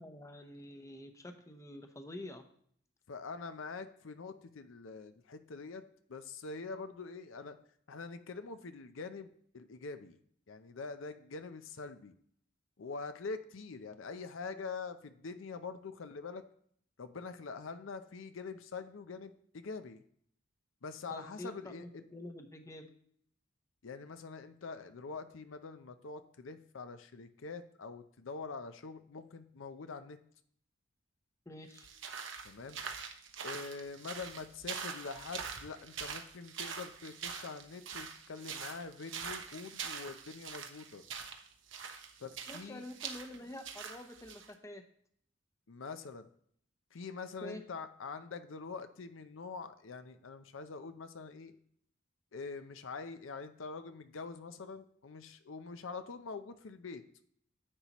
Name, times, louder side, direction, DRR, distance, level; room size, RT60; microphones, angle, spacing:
voice 1, 0.0-2.4 21.1-22.9 31.5-31.9 42.5-44.8 47.4-47.6, left 1 dB, 15° left, 7 dB, 0.7 m, -47 dB
voice 2, 3.1-7.6 7.9-10.2 10.5-12.1 12.8-16.4 17.0-20.0 20.8-22.1 23.8-30.2 32.4-32.8 33.4-41.0 42.2-42.8 45.7-46.3 46.9-51.6 52.3-57.0, left 4 dB, 80° left, 10 dB, 0.6 m, -45 dB
sound 1, 31.7-44.5, right 6 dB, 70° right, 0.9 m, -44 dB
9.8 x 8.2 x 3.0 m, 0.63 s
head